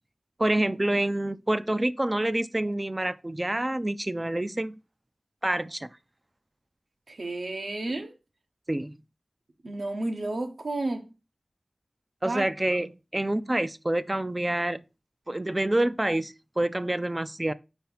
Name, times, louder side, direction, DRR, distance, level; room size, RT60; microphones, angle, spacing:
voice 1, 0.4-4.8 5.4-5.9 8.7-9.0 12.2-14.8 15.3-17.5, right 1 dB, 25° right, 0.4 m, -27 dB
voice 2, 7.1-8.2 9.6-11.1 12.2-12.4, right 2 dB, 75° right, 1.1 m, -31 dB
4.7 x 4.4 x 5.5 m
wide cardioid pair, 60°, 0 cm